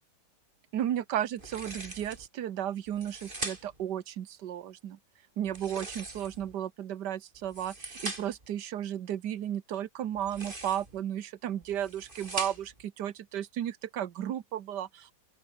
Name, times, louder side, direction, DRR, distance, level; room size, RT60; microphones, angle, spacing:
voice 1, 0.7-5.0 5.4-15.1, right 10 dB, 65° right, 1.6 m, -34 dB
sound 1, 1.4-2.3 2.9-3.9 5.5-6.5 7.3-8.5 10.1-11.0 11.6-12.8, right 2 dB, 25° right, 4.7 m, -41 dB
open air
omnidirectional pair, 2.0 m